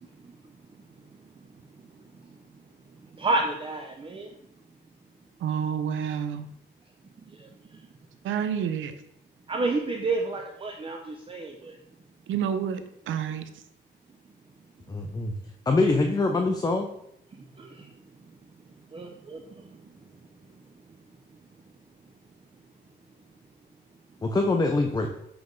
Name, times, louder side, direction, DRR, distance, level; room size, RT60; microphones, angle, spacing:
voice 1, 3.2-4.3 7.3-7.8 9.5-11.8 17.3-17.9 18.9-19.8, right 3 dB, 25° right, 2 dB, 0.7 m, -31 dB
voice 2, 5.4-6.5 8.2-8.9 12.3-12.8 13.1-13.4, right 8 dB, 80° right, 10 dB, 0.7 m, -28 dB
voice 3, 14.9-15.3 15.7-16.9 24.2-25.1, left 3 dB, 20° left, 4 dB, 0.6 m, -24 dB
7.9 x 3.5 x 3.9 m, 0.77 s
cardioid pair, 90°, 20 cm